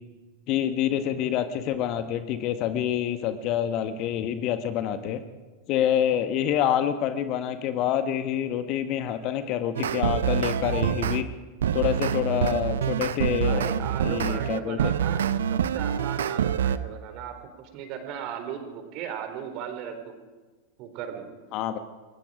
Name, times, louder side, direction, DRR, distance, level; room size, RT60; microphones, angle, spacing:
voice 1, 0.5-5.2 5.7-11.2 11.7-13.6 14.0-14.9 21.5-21.8, left 10 dB, 40° left, 10 dB, 1.5 m, -27 dB
sound 1, 9.7-11.2 11.6-16.8, right 8 dB, 65° right, 0.9 m, -26 dB
voice 2, 13.4-15.2 15.5-20.2 20.8-21.3, right 8 dB, 40° right, 7 dB, 4.1 m, -36 dB
28.5 x 22.0 x 5.1 m, 1.3 s
figure-of-eight pair, 90°, 0 cm